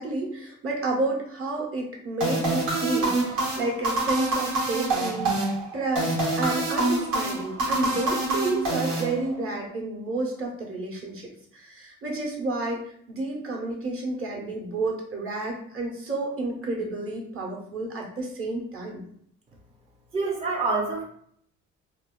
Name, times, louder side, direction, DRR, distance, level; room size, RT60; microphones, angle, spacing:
voice 1, 0.0-12.8 13.1-19.0, right 2 dB, 45° right, -1 dB, 0.9 m, -30 dB
sound 1, 2.2-9.6, right 2 dB, 85° right, 1.1 m, -26 dB
voice 2, 20.1-21.0, right 3 dB, 20° right, -2 dB, 0.4 m, -26 dB
3.2 x 2.2 x 2.2 m, 0.66 s
cardioid pair, 90°, 30 cm